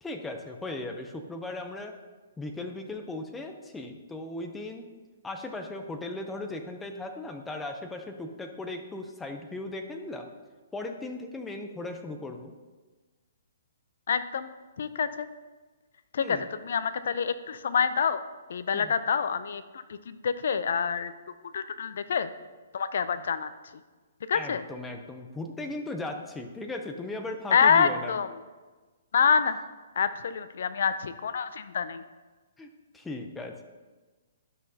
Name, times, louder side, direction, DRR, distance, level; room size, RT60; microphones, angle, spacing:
voice 1, 0.0-2.0 2.4-4.9 5.2-10.3 10.7-12.5 16.2-16.5 18.7-18.9 24.3-28.2 32.6-33.6, left 2 dB, 5° left, 4 dB, 0.6 m, -37 dB
voice 2, 14.1-14.5 14.8-15.3 16.1-18.2 18.5-21.1 21.5-22.3 22.7-23.5 24.3-24.6 27.5-28.3 29.1-29.6 30.0-32.0, left 6 dB, 65° left, 12 dB, 0.5 m, -27 dB
12.0 x 5.9 x 2.8 m, 1.3 s
hypercardioid pair, 155°, 0 cm